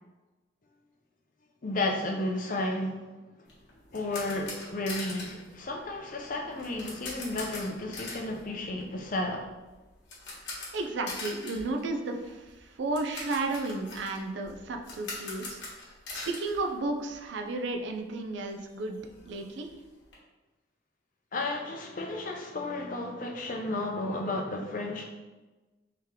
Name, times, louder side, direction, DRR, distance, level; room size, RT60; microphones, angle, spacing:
voice 1, 1.6-3.0 3.9-9.4 21.3-25.0, left 2 dB, 45° left, 2 dB, 0.5 m, -33 dB
sound 1, 3.5-17.4 17.7-17.8 18.3-18.4 18.6-20.1, left 3 dB, 65° left, 1.1 m, -43 dB
voice 2, 10.7-12.4 12.8-15.6 16.3-19.0 19.3-19.7, right 2 dB, 70° right, 4 dB, 0.4 m, -33 dB
3.3 x 2.9 x 3.6 m, 1.2 s
head